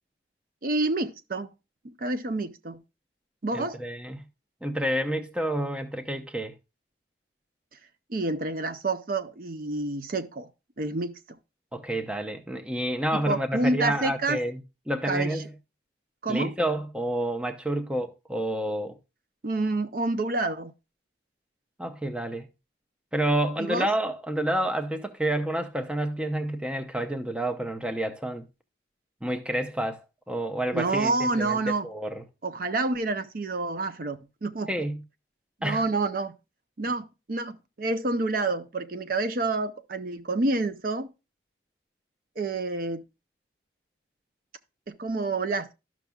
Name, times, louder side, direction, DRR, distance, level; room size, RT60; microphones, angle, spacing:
voice 1, 0.6-1.5 1.8-2.8 3.4-3.8 8.1-10.5 10.8-11.2 13.1-14.4 15.0-15.4 16.2-16.5 19.4-20.7 23.6-23.9 30.7-31.9 32.4-34.7 35.6-36.4 36.8-41.1 42.4-43.0 44.9-45.7, right 2 dB, 50° right, 0.5 m, -28 dB
voice 2, 3.5-4.2 4.6-6.5 11.7-14.6 14.9-15.5 16.3-19.0 21.8-22.5 23.1-28.4 29.2-31.6 31.8-32.2 34.7-35.0 35.6-35.8, right 1 dB, 5° right, 0.6 m, -29 dB
13.0 x 6.0 x 2.3 m
head